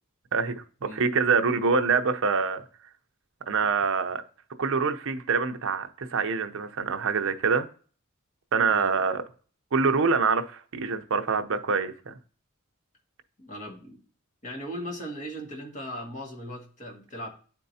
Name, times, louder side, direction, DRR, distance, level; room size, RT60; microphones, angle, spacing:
voice 1, 0.3-2.6 3.5-4.2 4.6-7.7 8.5-9.2 9.7-12.2, right 5 dB, 65° right, 0.7 m, -25 dB
voice 2, 13.4-14.0 14.4-17.3, equal, 35° left, 1.8 m, -38 dB
10.0 x 4.5 x 2.7 m
head